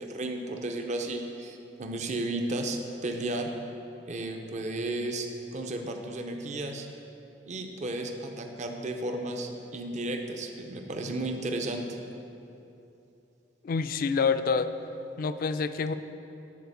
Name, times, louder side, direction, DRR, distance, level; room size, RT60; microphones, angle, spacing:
voice 1, 0.0-3.5 4.1-6.9 7.5-11.9, right 2 dB, 40° right, 4 dB, 0.6 m, -33 dB
voice 2, 13.6-14.7 15.2-15.9, left 5 dB, 55° left, 11 dB, 0.3 m, -27 dB
9.4 x 4.2 x 6.6 m, 2.9 s
head